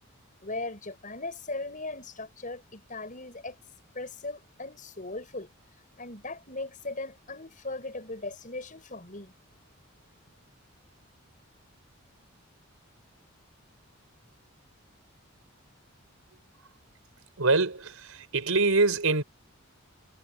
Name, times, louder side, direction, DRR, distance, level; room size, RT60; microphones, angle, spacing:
voice 1, 0.4-3.6 3.9-5.5 6.0-9.3, left 2 dB, 40° left, 7.4 m, -38 dB
voice 2, 17.4-19.2, right 3 dB, 90° right, 4.3 m, -24 dB
head